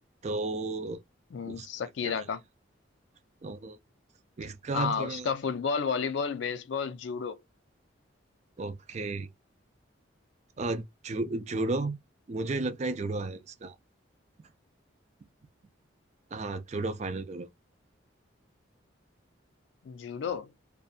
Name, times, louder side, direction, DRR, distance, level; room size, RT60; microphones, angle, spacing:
voice 1, 0.2-1.0 1.5-1.7 2.0-2.3 3.4-3.8 4.4-5.3 8.6-9.3 10.6-12.0 12.3-13.8 16.3-17.5, right 2 dB, 35° right, 0.4 m, -33 dB
voice 2, 1.3-2.4 4.7-7.4 19.8-20.5, left 6 dB, 65° left, 0.4 m, -32 dB
2.6 x 2.2 x 2.3 m
head